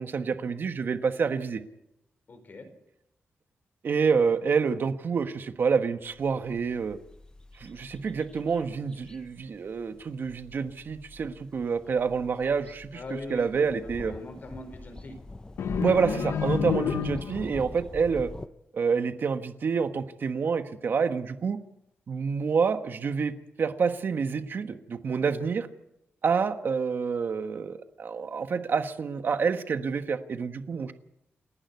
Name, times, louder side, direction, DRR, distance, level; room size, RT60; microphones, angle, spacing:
voice 1, 0.0-1.6 3.8-7.0 7.6-14.1 15.8-18.3 18.7-21.6 22.1-25.7 26.2-30.9, right 5 dB, 50° right, 8 dB, 1.3 m, -28 dB
voice 2, 2.3-2.7 12.9-13.7 14.0-15.2, left 2 dB, 45° left, 8 dB, 4.4 m, -41 dB
sound 1, 6.1-18.5, left 2 dB, 20° left, 0.7 m, -44 dB
sound 2, 15.6-17.6, left 8 dB, 85° left, 0.8 m, -29 dB
29.0 x 11.5 x 8.3 m, 0.87 s
wide cardioid pair, 145°, 4 cm